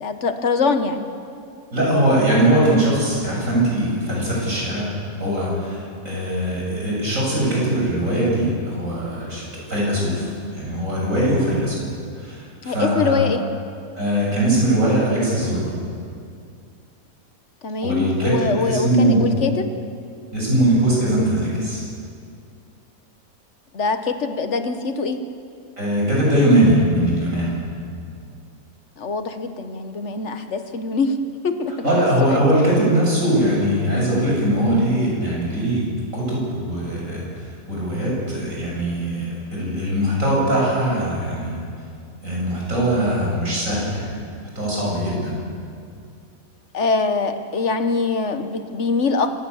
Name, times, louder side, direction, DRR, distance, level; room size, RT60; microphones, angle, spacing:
voice 1, 0.0-1.0 12.6-13.4 17.6-19.6 23.7-25.2 29.0-31.2 31.4-31.7 32.3-32.5 46.7-49.3, left 4 dB, 55° left, 8 dB, 1.5 m, -23 dB
voice 2, 1.7-4.9 5.2-9.4 9.7-11.8 12.1-13.2 14.0-15.7 17.8-19.3 20.3-21.8 25.8-27.6 31.8-35.8 36.1-41.6 42.2-44.1 44.6-45.4, right 1 dB, 60° right, -4 dB, 8.0 m, -21 dB
26.5 x 16.5 x 7.2 m, 2.4 s
omnidirectional pair, 1.5 m